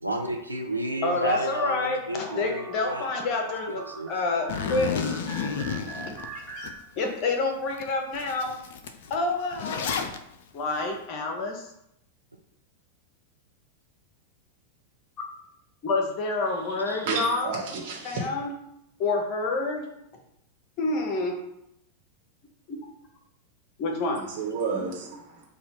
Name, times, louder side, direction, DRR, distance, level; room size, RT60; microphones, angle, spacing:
voice 1, 0.0-3.1 3.7-4.1 16.9-17.1, right 2 dB, 85° right, 2 dB, 0.5 m, -31 dB
voice 2, 1.0-3.8 4.1-5.1 6.1-8.6 9.1-9.8 10.5-11.7 15.8-17.5 18.0-18.5 19.0-19.9 20.8-21.4 22.7-22.8 23.8-24.2, left 3 dB, 40° left, 3 dB, 0.9 m, -28 dB
sound 1, 2.3-7.4, right 4 dB, 15° right, 0.8 m, -41 dB
Zipper (clothing), 4.5-6.7 7.2-7.3 7.8-7.9 8.1-10.2, left 6 dB, 55° left, 0.4 m, -31 dB
voice 3, 16.7-18.3 24.2-25.4, right 5 dB, 50° right, -1 dB, 1.3 m, -32 dB
5.4 x 2.4 x 4.1 m, 0.79 s
figure-of-eight pair, 90°, 0 cm